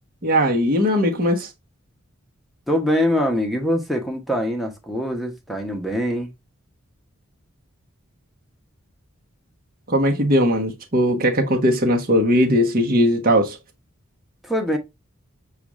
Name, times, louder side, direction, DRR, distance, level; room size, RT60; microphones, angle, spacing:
voice 1, 0.2-1.5 9.9-13.6, equal, 40° right, 1.1 m, -19 dB
voice 2, 2.7-6.3 14.4-14.8, equal, ahead, 0.9 m, -23 dB
6.8 x 2.4 x 3.0 m
head